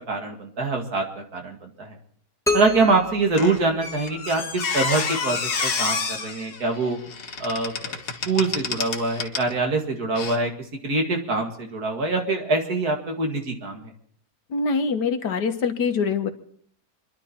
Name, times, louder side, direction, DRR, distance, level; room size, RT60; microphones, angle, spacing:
voice 1, 0.1-1.0 1.3-2.0 2.5-7.0 7.4-8.0 8.3-10.5 10.8-13.9, right 3 dB, 65° right, 3 dB, 2.5 m, -24 dB
sound 1, 2.5-4.4, left 3 dB, 5° left, 0.5 m, -29 dB
Squeak, 3.4-9.5 10.1-10.4, left 5 dB, 70° left, 1.9 m, -29 dB
voice 2, 14.5-16.3, left 5 dB, 85° left, 7 dB, 1.9 m, -24 dB
27.5 x 11.5 x 4.3 m, 0.62 s
omnidirectional pair, 1.8 m